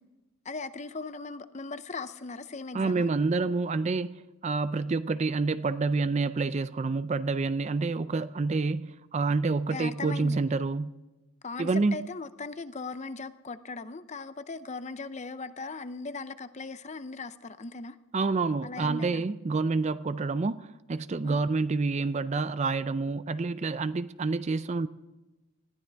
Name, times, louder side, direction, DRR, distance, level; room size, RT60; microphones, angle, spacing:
voice 1, 0.4-3.1 9.7-10.4 11.4-18.0 18.6-19.2 21.2-21.4, left 3 dB, 30° left, 0.6 m, -38 dB
voice 2, 2.7-4.2 4.4-11.0 11.6-12.0 18.1-24.9, right 3 dB, 30° right, 0.4 m, -28 dB
20.5 x 15.0 x 3.4 m
head